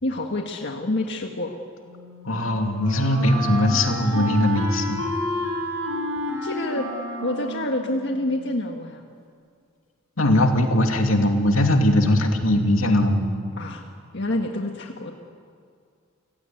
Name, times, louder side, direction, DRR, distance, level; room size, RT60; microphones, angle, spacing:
voice 1, 0.0-1.5 6.4-6.9 7.2-9.0 13.6-13.8 14.1-15.1, left 1 dB, 60° left, 2 dB, 1.6 m, -27 dB
Wind instrument woodwind instrument, 1.9-8.7, left 1 dB, 75° right, 7.3 m, -31 dB
voice 2, 2.2-5.0 10.2-13.3, left 1 dB, 85° left, 3 dB, 2.7 m, -20 dB
29.0 x 16.5 x 9.3 m, 2.2 s
head